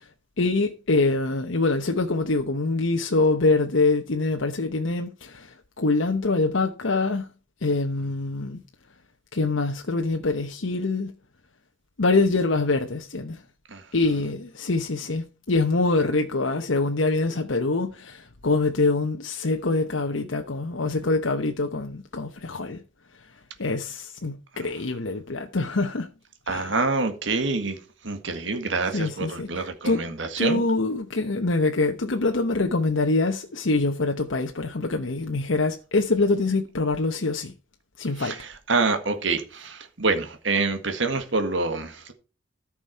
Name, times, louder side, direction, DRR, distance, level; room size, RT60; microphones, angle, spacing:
voice 1, 0.4-5.1 5.8-7.2 7.6-8.6 9.4-11.1 12.0-13.3 13.9-17.9 18.4-22.8 23.6-26.0 26.5-26.6 28.9-29.5 29.8-30.0 30.4-37.5 38.0-38.3, left 3 dB, 75° left, 1.0 m, -24 dB
voice 2, 13.7-14.3 24.6-24.7 26.5-27.8 28.0-30.6 38.2-42.1, right 3 dB, 70° right, 1.8 m, -27 dB
13.5 x 6.2 x 4.6 m
head